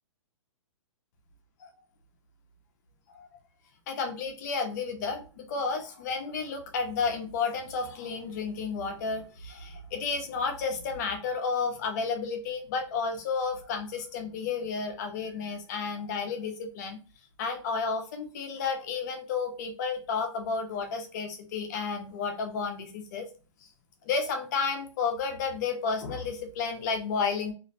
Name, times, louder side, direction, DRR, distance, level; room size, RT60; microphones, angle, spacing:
voice 1, 3.9-17.0 17.4-23.3 24.1-27.5, left 5 dB, 35° left, 5 dB, 0.5 m, -32 dB
2.4 x 2.0 x 2.6 m, 0.35 s
hypercardioid pair, 155°, 17 cm